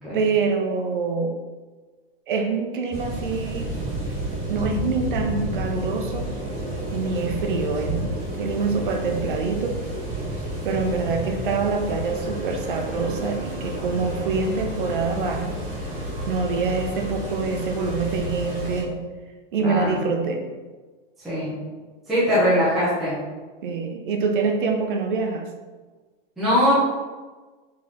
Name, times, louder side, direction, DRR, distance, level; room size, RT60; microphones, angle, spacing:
voice 1, 0.1-1.3 2.3-3.7 4.5-6.3 6.9-9.8 10.6-15.6 16.3-18.9 19.5-20.4 22.5-22.6 23.6-25.4, right 4 dB, 55° right, 4 dB, 0.7 m, -25 dB
sound 1, 2.9-18.8, right 1 dB, 20° right, 1.0 m, -30 dB
voice 2, 19.6-20.0 21.2-21.5 22.1-23.1 26.4-26.7, equal, ahead, -12 dB, 0.4 m, -21 dB
4.1 x 2.9 x 3.8 m, 1.3 s
supercardioid pair, 175°, 30 cm